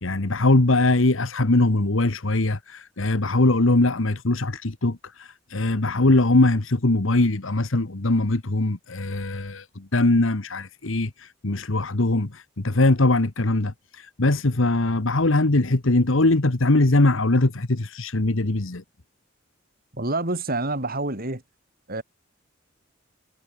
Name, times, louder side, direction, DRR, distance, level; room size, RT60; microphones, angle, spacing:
voice 1, 0.0-18.8, left 2 dB, 80° left, 1.4 m, -21 dB
voice 2, 19.9-21.4 21.9-22.0, right 2 dB, 50° right, 5.9 m, -27 dB
head